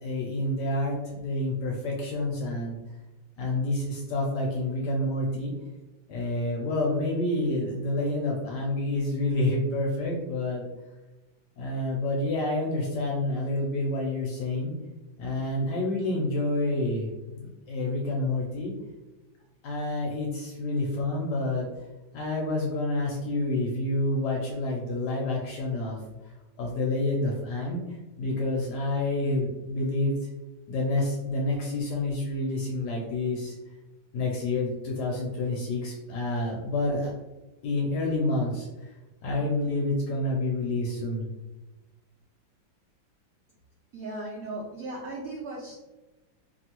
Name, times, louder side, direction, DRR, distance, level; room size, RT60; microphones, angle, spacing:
voice 1, 0.0-2.8 3.4-5.5 6.1-10.6 11.6-14.7 15.2-18.7 19.6-21.7 22.1-26.0 26.6-30.3 30.7-33.5 34.1-37.1 37.6-38.9 39.2-41.3, left 2 dB, 70° left, -1 dB, 1.1 m, -28 dB
voice 2, 43.9-45.8, right 2 dB, 70° right, -3 dB, 0.8 m, -37 dB
3.0 x 2.7 x 2.9 m, 1.1 s
omnidirectional pair, 2.1 m